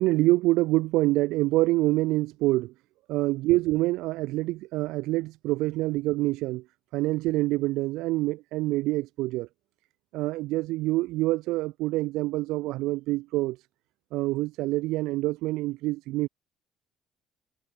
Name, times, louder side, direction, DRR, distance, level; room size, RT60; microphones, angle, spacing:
voice 1, 0.0-2.7 3.1-6.6 6.9-9.5 10.1-13.6 14.1-16.3, right 19 dB, 70° right, 0.7 m, -26 dB
hypercardioid pair, 50°, 0 cm